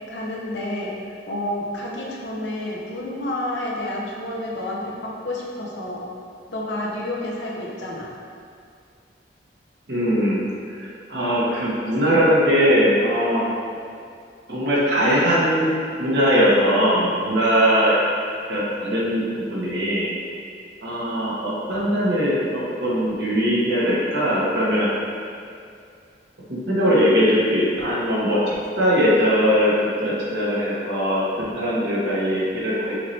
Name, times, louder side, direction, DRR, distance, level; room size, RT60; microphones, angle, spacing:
voice 1, 0.1-6.0 6.5-8.1, left 1 dB, 85° left, -4 dB, 0.8 m, -30 dB
voice 2, 9.9-10.4 10.8-13.5 14.5-15.7 16.0-18.0 18.5-19.2 19.5-20.1 20.8-24.9 26.7-28.4 28.8-29.7 30.0-32.9, equal, 70° right, -7 dB, 1.2 m, -20 dB
5.8 x 2.8 x 3.2 m, 2.3 s
head